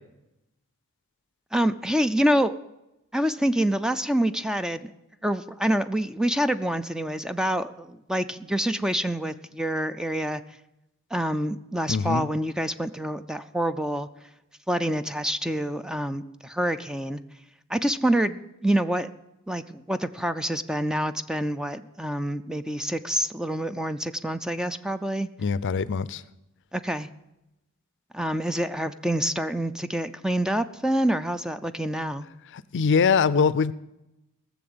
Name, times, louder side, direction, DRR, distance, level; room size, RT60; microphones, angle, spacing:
voice 1, 1.5-2.5 3.1-4.9 5.2-10.4 11.1-14.1 14.7-17.2 17.7-19.1 19.5-25.3 26.7-27.1 28.1-32.3, right 1 dB, 5° right, 0.4 m, -26 dB
voice 2, 11.9-12.3 25.4-26.2 32.5-33.7, left 5 dB, 55° left, 0.5 m, -23 dB
18.0 x 7.2 x 7.8 m
head